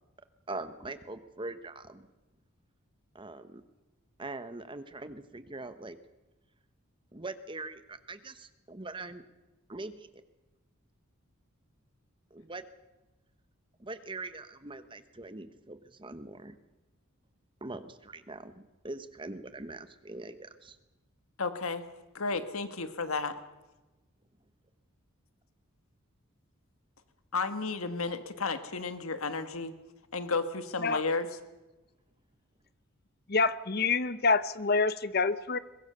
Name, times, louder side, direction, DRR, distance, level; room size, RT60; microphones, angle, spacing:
voice 1, 0.5-2.1 3.1-3.6 4.2-6.0 7.1-9.2 9.7-10.1 12.3-12.6 13.8-16.6 17.6-20.8, right 2 dB, 25° right, 11 dB, 1.1 m, -42 dB
voice 2, 21.4-21.8 22.1-23.3 27.3-29.7 30.1-31.3, left 4 dB, 80° left, 10 dB, 1.6 m, -32 dB
voice 3, 33.3-35.6, left 4 dB, 45° left, 15 dB, 0.9 m, -27 dB
23.0 x 20.5 x 6.8 m, 1.1 s
head